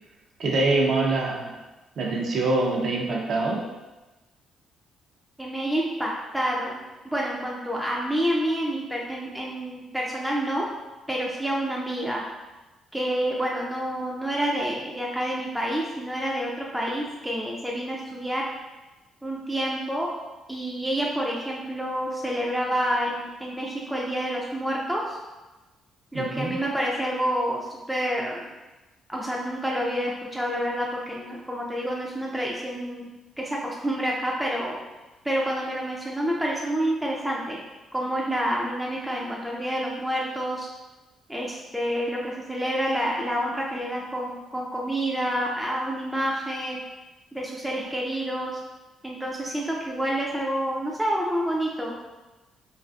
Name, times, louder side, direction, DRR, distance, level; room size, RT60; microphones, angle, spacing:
voice 1, 0.4-1.6 2.0-3.6 26.1-26.5, right 2 dB, 65° right, -1 dB, 0.5 m, -24 dB
voice 2, 5.4-6.8 7.0-10.7 11.1-12.2 12.9-18.4 19.2-20.1 20.5-25.2 26.1-28.5 29.1-33.1 33.4-34.8 35.2-37.6 37.9-40.7 41.3-46.8 47.3-48.6 49.0-52.0, equal, 5° right, -3 dB, 0.3 m, -28 dB
2.4 x 2.4 x 2.3 m, 1.1 s
cardioid pair, 90°, 0 cm